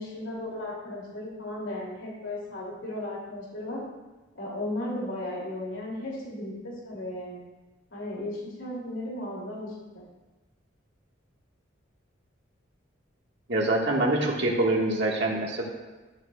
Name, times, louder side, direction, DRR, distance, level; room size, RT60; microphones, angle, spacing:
voice 1, 0.0-3.8 4.4-7.4 7.9-10.1, left 1 dB, 75° left, -4 dB, 2.5 m, -35 dB
voice 2, 13.5-15.6, right 2 dB, 60° right, -2 dB, 1.5 m, -25 dB
12.0 x 11.0 x 2.3 m, 1.2 s
head